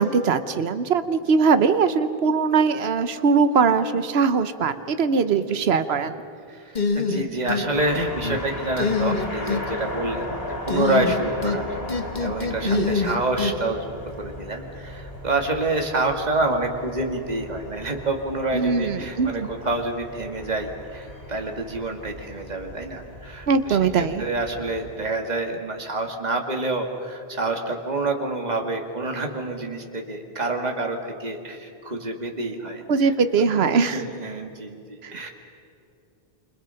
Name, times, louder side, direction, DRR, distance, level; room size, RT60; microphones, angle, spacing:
voice 1, 0.0-6.1 12.7-12.9 18.5-19.5 23.5-24.2 32.9-34.0 35.0-35.3, right 5 dB, 85° right, 11 dB, 1.2 m, -21 dB
voice 2, 6.5-10.3 10.7-13.9 14.2-33.1 33.7-35.3, right 2 dB, 45° right, 2 dB, 2.2 m, -28 dB
sound 1, 6.8-7.7 8.0-8.4 8.8-9.6 10.7-11.6 11.9-13.5, left 4 dB, 45° left, 1.8 m, -24 dB
sound 2, 7.7-25.0, left 1 dB, 70° left, 3.1 m, -37 dB
28.5 x 27.0 x 5.8 m, 2.6 s
omnidirectional pair, 1.0 m